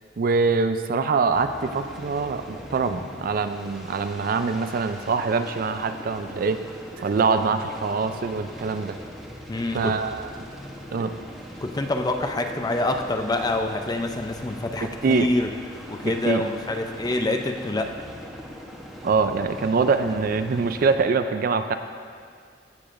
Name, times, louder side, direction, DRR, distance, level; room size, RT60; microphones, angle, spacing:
voice 1, 0.2-6.6 7.0-9.0 9.7-10.3 10.9-11.1 14.8-15.3 16.0-16.5 19.0-21.7, right 4 dB, 50° right, 9 dB, 0.4 m, -24 dB
sound 1, 1.3-21.0, equal, ahead, 0.9 m, -41 dB
voice 2, 9.5-10.0 11.6-15.5 15.9-17.9, left 2 dB, 20° left, 5 dB, 0.5 m, -26 dB
15.0 x 6.8 x 2.5 m, 2.1 s
head